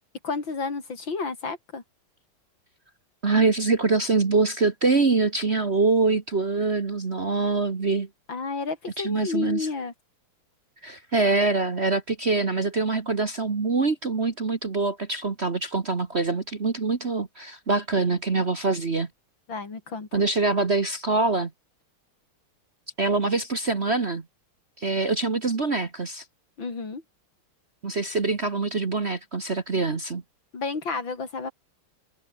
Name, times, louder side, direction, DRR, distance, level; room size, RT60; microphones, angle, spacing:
voice 1, 0.2-1.8 8.3-9.9 19.5-20.2 26.6-27.0 30.5-31.5, left 4 dB, 60° left, 4.3 m, -31 dB
voice 2, 3.2-8.1 9.0-9.7 10.8-19.1 20.1-21.5 23.0-24.2 24.8-26.2 27.8-30.2, right 3 dB, 35° right, 1.6 m, -24 dB
omnidirectional pair, 2.4 m